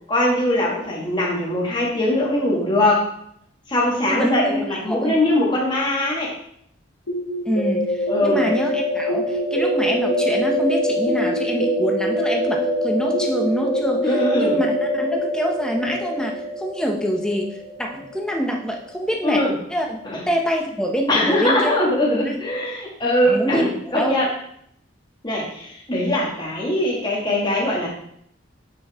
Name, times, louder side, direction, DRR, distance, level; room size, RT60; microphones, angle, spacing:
voice 1, 0.1-3.1 3.7-6.3 8.1-8.4 14.0-14.6 19.2-19.5 20.1-20.3 21.1-24.3 25.2-27.9, left 1 dB, 25° left, -4 dB, 1.9 m, -21 dB
voice 2, 4.1-5.2 7.4-21.7 22.1-22.4 23.2-23.6 23.9-24.3, equal, 5° left, 1 dB, 0.9 m, -25 dB
sound 1, 7.1-18.8, equal, 90° left, 1.2 m, -24 dB
8.5 x 5.3 x 3.6 m, 0.70 s
head